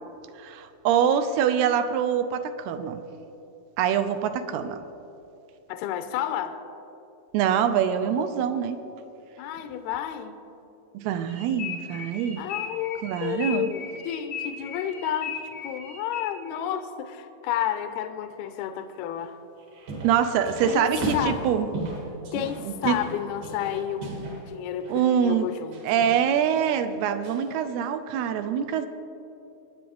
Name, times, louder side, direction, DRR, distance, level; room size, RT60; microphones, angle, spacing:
voice 1, 0.4-3.0 3.8-4.8 7.3-8.8 10.9-12.4 13.0-13.7 20.0-21.7 22.6-23.0 24.9-25.5 25.8-28.9, right 8 dB, 80° right, 10 dB, 2.5 m, -24 dB
voice 2, 5.7-6.6 9.4-10.4 12.4-19.3 20.7-20.9 21.1-21.5 22.3-25.8, left 10 dB, 80° left, 8 dB, 2.4 m, -31 dB
sound 1, 11.3-16.6, left 7 dB, 65° left, 0.5 m, -37 dB
sound 2, 19.6-20.2 20.4-24.4 24.8-25.0 25.7-26.2 26.7-26.8 27.2-27.6, right 2 dB, 65° right, 4.1 m, -35 dB
25.0 x 9.5 x 3.5 m, 2.8 s
omnidirectional pair, 4.8 m